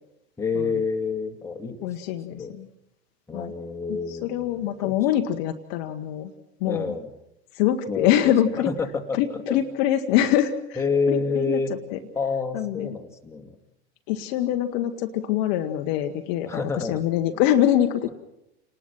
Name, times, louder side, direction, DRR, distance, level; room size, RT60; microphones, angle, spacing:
voice 1, 0.4-1.9 2.3-2.5 3.3-5.0 6.7-7.1 7.9-8.3 8.7-9.6 10.8-11.7 12.2-13.6 16.5-17.0, left 4 dB, 10° left, 3 dB, 2.3 m, -28 dB
voice 2, 1.8-2.7 3.3-3.5 3.9-6.3 6.6-6.9 7.5-8.7 9.1-11.6 11.9-12.0 12.5-13.0 14.1-18.1, left 11 dB, 45° left, 6 dB, 1.4 m, -24 dB
29.5 x 19.5 x 6.1 m, 0.85 s
figure-of-eight pair, 90°, 34 cm